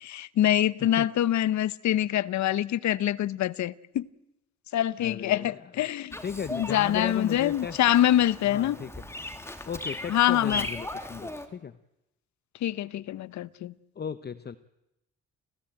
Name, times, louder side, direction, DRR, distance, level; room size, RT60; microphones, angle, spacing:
voice 1, 0.0-4.1 4.7-6.2 6.5-8.8 10.1-10.7 12.6-13.7, left 12 dB, 70° left, 0.8 m, -25 dB
voice 2, 5.0-5.8 6.2-7.8 8.4-9.1 9.6-11.8 14.0-14.6, left 7 dB, 35° left, 0.8 m, -36 dB
Bird vocalization bird call bird song, 6.1-11.5, left 1 dB, 10° left, 2.6 m, -38 dB
29.5 x 16.0 x 8.9 m
cardioid pair, 90°, 30 cm